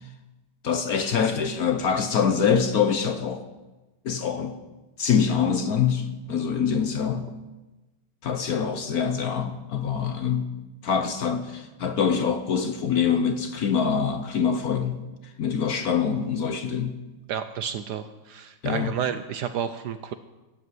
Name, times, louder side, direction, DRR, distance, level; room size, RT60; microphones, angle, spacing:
voice 1, 0.6-3.4 4.0-4.6 5.0-7.3 8.2-10.5 10.8-15.0 15.4-17.0 18.6-18.9, left 7 dB, 60° left, 1.1 m, -25 dB
voice 2, 17.3-20.1, right 8 dB, 70° right, 1.0 m, -31 dB
15.0 x 8.2 x 7.7 m
omnidirectional pair, 2.2 m